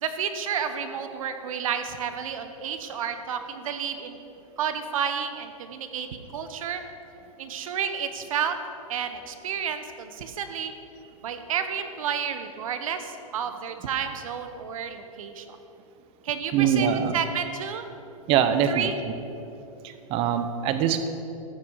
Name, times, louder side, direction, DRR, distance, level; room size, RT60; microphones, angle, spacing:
voice 1, 0.0-4.2 4.6-6.8 7.4-8.6 8.9-10.7 11.2-15.6 16.2-17.8 18.7-19.0, right 7 dB, 70° right, 8 dB, 1.1 m, -31 dB
voice 2, 16.5-17.2 18.3-18.9 19.8-21.1, right 8 dB, 30° right, 9 dB, 0.8 m, -23 dB
14.0 x 8.4 x 4.9 m, 2.9 s
hypercardioid pair, 140°, 18 cm